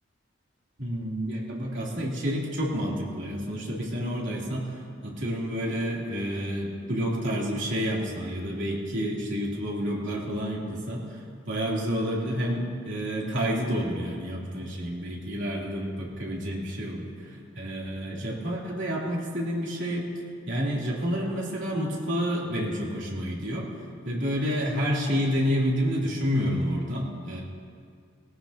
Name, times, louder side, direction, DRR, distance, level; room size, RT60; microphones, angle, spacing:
voice 1, 0.8-20.1 20.5-23.7 24.0-27.4, equal, 70° right, -4 dB, 3.3 m, -29 dB
20.0 x 17.5 x 2.9 m, 2.2 s
head